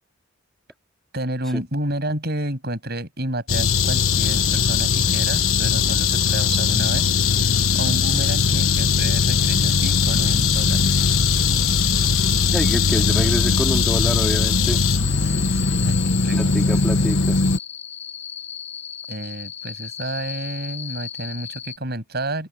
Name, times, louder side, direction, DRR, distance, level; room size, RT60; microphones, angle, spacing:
voice 1, 1.1-7.1 7.7-10.8 11.9-12.1 15.1-15.6 15.8-16.6 19.1-22.5, right 1 dB, 45° right, 7.7 m, -30 dB
sound 1, 3.5-17.6, left 5 dB, 70° left, 1.2 m, -19 dB
sound 2, 3.7-21.8, left 8 dB, 30° left, 6.6 m, -37 dB
voice 2, 12.5-14.8 16.3-17.4, equal, ahead, 3.2 m, -27 dB
open air
head